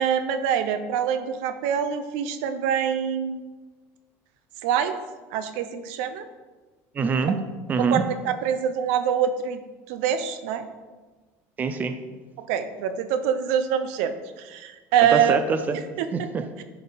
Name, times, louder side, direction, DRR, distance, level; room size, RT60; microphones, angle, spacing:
voice 1, 0.0-3.4 4.6-5.0 5.3-6.2 7.8-9.6 9.9-10.6 12.5-15.4 16.0-16.3, right 8 dB, 85° right, 10 dB, 0.8 m, -25 dB
voice 2, 6.9-7.4 7.7-8.0 11.6-12.0 15.0-15.8 16.1-16.6, right 5 dB, 25° right, 9 dB, 0.5 m, -25 dB
10.5 x 5.6 x 4.1 m, 1.3 s
cardioid pair, 145°, 7 cm